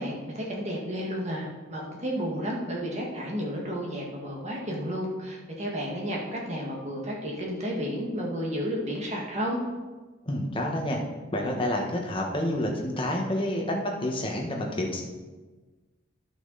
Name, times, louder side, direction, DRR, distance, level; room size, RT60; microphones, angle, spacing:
voice 1, 0.0-9.6, equal, 35° right, -2 dB, 1.8 m, -32 dB
voice 2, 10.2-11.0 11.3-15.0, left 1 dB, 25° left, 0 dB, 1.3 m, -28 dB
11.0 x 5.9 x 4.1 m, 1.3 s
head